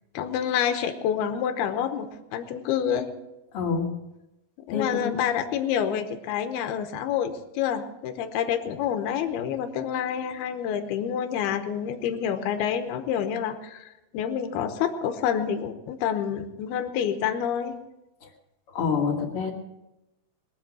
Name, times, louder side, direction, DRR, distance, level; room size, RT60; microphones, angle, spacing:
voice 1, 0.1-3.1 4.7-17.7, left 8 dB, 85° left, 7 dB, 2.9 m, -28 dB
voice 2, 3.5-4.0 4.7-5.2 18.2-18.3 18.7-19.5, left 5 dB, 40° left, -1 dB, 2.7 m, -27 dB
21.5 x 7.8 x 6.1 m, 0.95 s
omnidirectional pair, 4.4 m